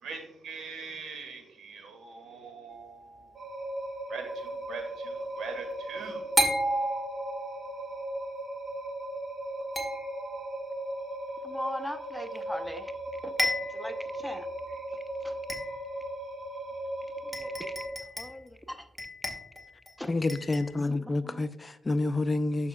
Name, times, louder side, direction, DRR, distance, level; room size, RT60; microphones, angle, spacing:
voice 1, 0.0-3.1 4.1-6.3, right 4 dB, 70° right, 2.0 m, -42 dB
sound 1, 2.7-3.2 6.4-7.7 9.8-10.5 12.6-12.7 13.0-13.1 13.4-14.0 14.6-14.7 15.5-16.0 16.9-17.0 17.3-18.5 19.0-19.9 20.3-20.8, equal, 15° right, 2.2 m, -32 dB
sound 2, 3.4-17.9, right 1 dB, 40° right, 2.0 m, -37 dB
voice 2, 11.4-12.9 13.2-14.5 14.9-15.4 17.2-17.7 18.0-18.9 20.0-20.1 21.0-21.5, left 1 dB, ahead, 0.8 m, -40 dB
voice 3, 20.1-22.7, left 2 dB, 30° left, 0.5 m, -28 dB
11.5 x 5.7 x 2.3 m
supercardioid pair, 55°, 0 cm